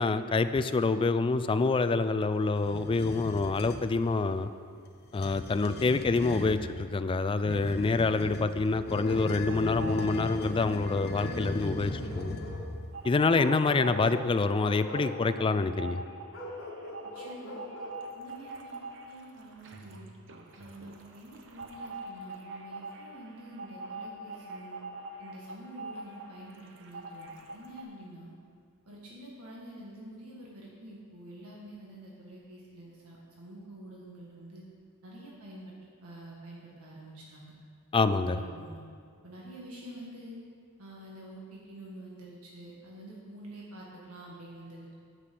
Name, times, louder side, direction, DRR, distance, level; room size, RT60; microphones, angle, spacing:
voice 1, 0.0-4.5 5.1-12.4 13.0-16.0 37.9-38.4, left 3 dB, 25° left, 11 dB, 0.3 m, -27 dB
sound 1, 2.6-3.9 5.0-6.6 7.4-12.9, left 1 dB, 45° left, 0.9 m, -38 dB
Bark, 8.8-10.5 10.9-12.6 13.3-14.3 14.6-15.6 16.3-18.0, left 1 dB, 65° left, 2.0 m, -41 dB
sound 2, 9.5-10.7 11.0-27.8, right 2 dB, 60° right, 0.9 m, -44 dB
voice 2, 17.1-17.7 18.1-18.8 19.1-20.1 20.6-24.8 25.2-28.3 28.9-34.7 35.0-35.7 36.0-37.5 38.3-38.8 39.2-40.4 40.8-44.9, right 1 dB, 75° right, -4 dB, 1.8 m, -47 dB
9.8 x 6.0 x 7.6 m, 2.2 s
head